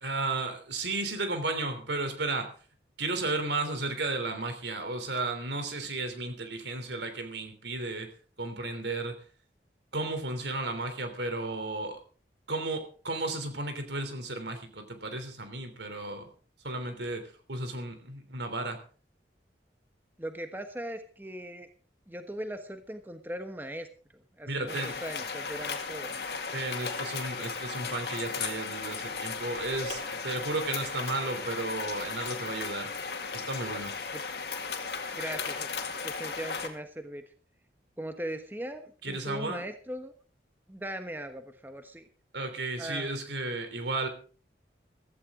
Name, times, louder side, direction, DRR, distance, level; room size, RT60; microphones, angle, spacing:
voice 1, 0.0-2.5 3.0-8.1 8.4-9.2 9.9-12.0 12.5-16.3 16.6-18.8 24.4-25.0 26.5-32.9 33.3-33.9 39.0-39.6 42.3-44.1, right 2 dB, 80° right, 7 dB, 3.3 m, -34 dB
voice 2, 20.2-21.7 22.1-23.9 24.1-26.2 34.1-34.2 35.1-35.7 36.0-37.2 38.0-40.1 40.7-42.1 42.8-43.2, right 1 dB, 10° right, 7 dB, 1.2 m, -39 dB
sound 1, 24.7-36.7, left 5 dB, 65° left, 2.2 m, -36 dB
16.0 x 14.5 x 3.8 m, 0.40 s
head